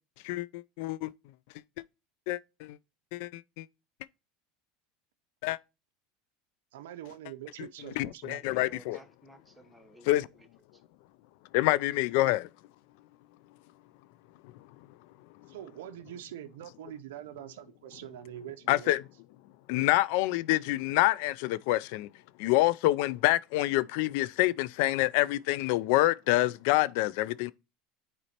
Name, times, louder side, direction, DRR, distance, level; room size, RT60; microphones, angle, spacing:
voice 1, 0.2-1.1 2.3-2.8 3.1-3.7 5.4-5.6 8.0-9.0 10.1-10.3 11.5-12.5 18.7-19.0 19.7-22.1 22.4-27.5, left 17 dB, 70° left, 0.3 m, -27 dB
voice 2, 6.7-8.7 15.5-18.9, right 12 dB, 85° right, 0.5 m, -44 dB
voice 3, 8.2-10.5, right 1 dB, ahead, 1.0 m, -55 dB
9.7 x 4.2 x 2.8 m
supercardioid pair, 115°, 0 cm